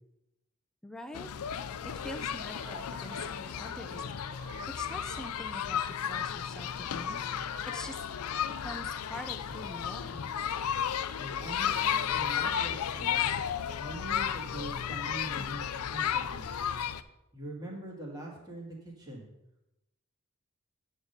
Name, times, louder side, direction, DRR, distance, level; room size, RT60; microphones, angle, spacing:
voice 1, 0.8-1.3 1.8-8.1 8.6-10.2, equal, 5° left, 6 dB, 0.5 m, -45 dB
sound 1, 1.1-17.0, left 8 dB, 85° left, 0.4 m, -33 dB
sound 2, 1.8-11.0, right 2 dB, 45° right, 1.2 m, -54 dB
voice 2, 11.1-13.3 13.8-16.5 17.3-19.3, right 1 dB, 15° right, -3 dB, 1.9 m, -43 dB
9.4 x 3.8 x 6.6 m, 0.90 s
head